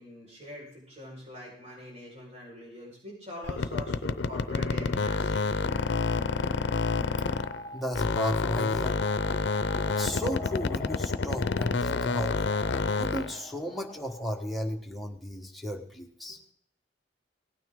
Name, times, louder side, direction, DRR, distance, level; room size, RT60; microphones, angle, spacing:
voice 1, 0.0-5.7 16.3-16.4, left 1 dB, 40° right, -4 dB, 4.9 m, -44 dB
sound 1, 3.4-7.7 7.9-13.4, left 4 dB, 70° left, 0.6 m, -28 dB
sound 2, 7.1-14.8, left 2 dB, 20° left, 0.5 m, -45 dB
voice 2, 7.7-9.0 10.0-12.5 12.9-16.4, equal, ahead, 0 dB, 1.3 m, -34 dB
17.0 x 9.3 x 3.7 m, 0.62 s
head